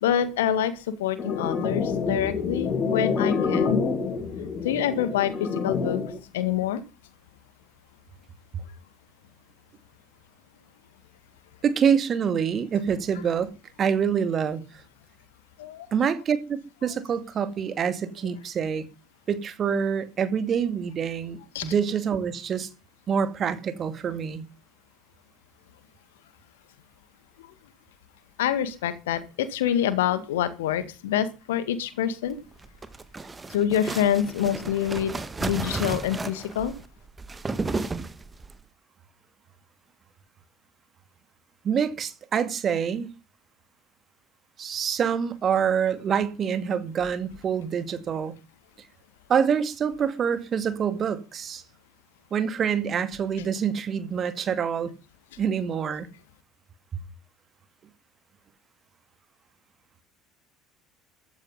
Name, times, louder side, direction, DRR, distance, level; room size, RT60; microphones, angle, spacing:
voice 1, 0.0-3.8 4.6-6.8 15.6-15.9 21.5-21.7 27.4-27.5 28.4-32.4 33.5-35.1 35.4-36.7, left 10 dB, 70° left, 2.0 m, -26 dB
sound 1, 1.2-6.2, left 5 dB, 35° left, 6.4 m, -27 dB
voice 2, 11.6-13.5 13.8-14.6 15.9-18.9 19.3-22.7 23.1-24.5 41.6-43.1 44.6-48.4 49.3-51.6 52.3-54.9 55.4-56.1, right 7 dB, 40° right, 2.3 m, -26 dB
sound 2, 32.5-38.6, right 3 dB, 20° right, 1.9 m, -33 dB
15.0 x 13.0 x 5.5 m
figure-of-eight pair, 60°, 0 cm